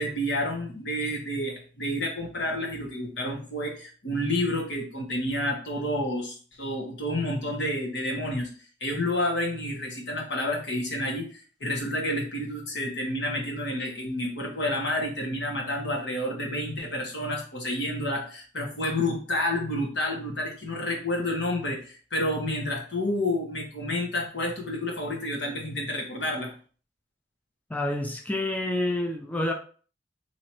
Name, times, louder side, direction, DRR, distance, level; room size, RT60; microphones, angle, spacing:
voice 1, 0.0-8.5 8.8-26.5, left 1 dB, 70° left, 1.3 m, -29 dB
voice 2, 27.7-29.5, left 1 dB, 10° left, 0.4 m, -28 dB
2.9 x 2.7 x 4.4 m
head